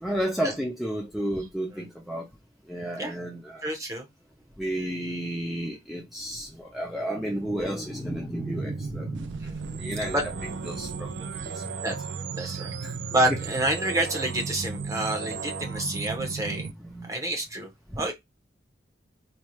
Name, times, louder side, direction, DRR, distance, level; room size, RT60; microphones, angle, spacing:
voice 1, 0.0-2.3 2.7-3.6 4.6-10.3 10.6-11.1 11.4-11.7 12.4-12.9 16.8-17.1 17.9-18.0, right 1 dB, ahead, 0.5 m, -32 dB
voice 2, 3.6-4.1 9.4-9.6 10.1-10.2 11.8-11.9 12.3-12.7 13.1-16.7 17.1-17.7 18.0-18.1, right 1 dB, 15° right, 1.0 m, -28 dB
sound 1, 8.4-16.7, right 5 dB, 65° right, 0.4 m, -35 dB
4.1 x 2.3 x 3.0 m
head